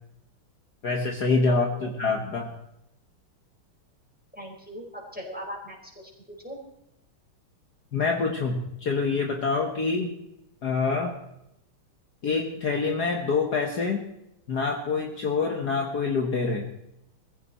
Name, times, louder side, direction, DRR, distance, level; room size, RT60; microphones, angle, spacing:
voice 1, 0.8-2.5 7.9-10.2 10.6-11.2 12.2-14.1 14.5-16.7, left 4 dB, 50° left, 2 dB, 1.9 m, -26 dB
voice 2, 1.5-1.9 4.3-6.1 6.4-6.6, equal, 5° right, -1 dB, 4.8 m, -39 dB
21.0 x 15.5 x 4.4 m, 0.82 s
omnidirectional pair, 2.4 m